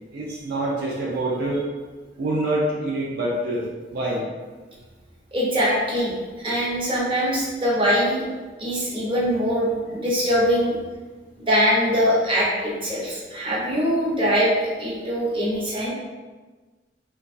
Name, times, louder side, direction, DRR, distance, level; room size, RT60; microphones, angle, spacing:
voice 1, 0.1-1.6 2.2-4.2, right 1 dB, 60° right, -5 dB, 0.5 m, -26 dB
voice 2, 5.3-6.1 6.4-8.2 8.6-10.8 11.5-15.9, equal, 30° right, -6 dB, 0.7 m, -22 dB
3.0 x 2.2 x 2.5 m, 1.3 s
head